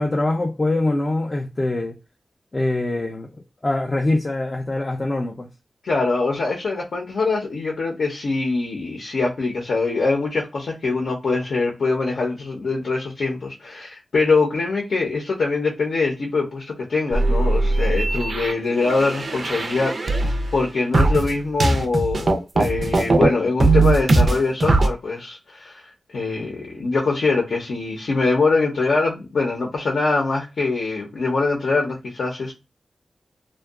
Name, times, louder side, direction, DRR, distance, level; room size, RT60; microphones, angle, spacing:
voice 1, 0.0-2.0 2.5-3.3 3.6-5.5 18.1-18.2, left 2 dB, 30° left, 0.4 m, -23 dB
voice 2, 5.8-32.5, left 3 dB, 75° left, 0.6 m, -23 dB
sound 1, 17.1-20.6 20.9-23.3 23.6-24.9, right 2 dB, 55° right, 0.4 m, -19 dB
2.6 x 2.2 x 2.3 m
wide cardioid pair, 100°, 0 cm